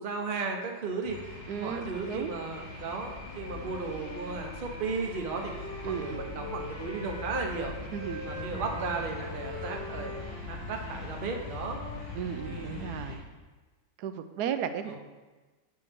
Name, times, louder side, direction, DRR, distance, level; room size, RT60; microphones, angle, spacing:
voice 1, 0.0-5.5 5.8-7.7 8.2-10.1 10.4-11.8 12.4-13.0 14.9-15.0, right 4 dB, 40° right, 2 dB, 0.9 m, -35 dB
sound 1, 1.0-13.2, left 3 dB, 70° left, 2.1 m, -41 dB
voice 2, 1.5-2.3 5.8-6.2 7.9-8.9 12.1-13.2 14.0-15.0, right 8 dB, 75° right, 9 dB, 1.1 m, -35 dB
Wind instrument woodwind instrument, 3.2-7.6 7.9-12.7, left 2 dB, 40° left, 1.2 m, -44 dB
8.1 x 7.5 x 3.6 m, 1.3 s
omnidirectional pair, 1.8 m